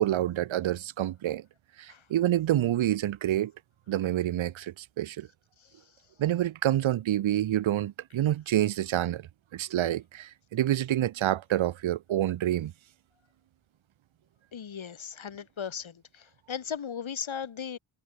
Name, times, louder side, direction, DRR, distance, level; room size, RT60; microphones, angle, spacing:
voice 1, 0.0-1.4 1.8-3.5 3.9-5.3 6.2-9.2 9.5-12.7, right 12 dB, 90° right, 0.5 m, -27 dB
voice 2, 14.5-17.8, left 7 dB, 85° left, 1.4 m, -37 dB
wide cardioid pair, 60°, 46 cm